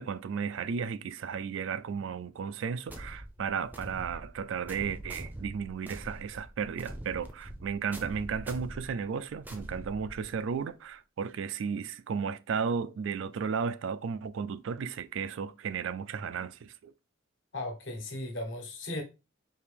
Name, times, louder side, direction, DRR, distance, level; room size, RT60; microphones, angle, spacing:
voice 1, 0.0-16.9, right 6 dB, 65° right, 0.3 m, -34 dB
sound 1, 2.9-10.5, right 1 dB, 10° right, 0.5 m, -44 dB
voice 2, 17.5-19.0, left 1 dB, 60° left, 1.2 m, -36 dB
4.5 x 2.8 x 3.4 m
head